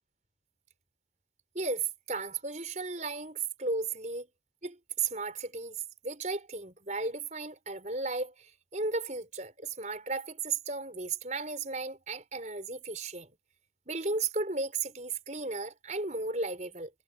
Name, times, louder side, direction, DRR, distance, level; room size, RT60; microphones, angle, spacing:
voice 1, 1.5-4.3 4.6-13.3 13.9-16.9, right 3 dB, 40° right, 5.1 m, -35 dB
head